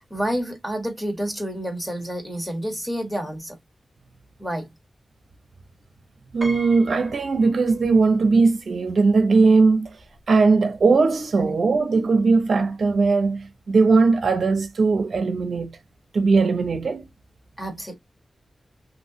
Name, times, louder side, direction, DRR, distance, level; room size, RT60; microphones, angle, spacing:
voice 1, 0.0-3.6 4.4-4.7 11.4-11.6 17.6-17.9, equal, 5° left, 1.1 m, -29 dB
voice 2, 6.3-10.0 10.3-15.7 16.1-17.1, right 4 dB, 60° right, 0.7 m, -19 dB
Piano, 6.4-8.2 8.5-8.6 9.8-9.9 10.2-10.4, right 1 dB, 10° right, 0.8 m, -40 dB
3.1 x 2.9 x 2.7 m
wide cardioid pair, 170°, 0 cm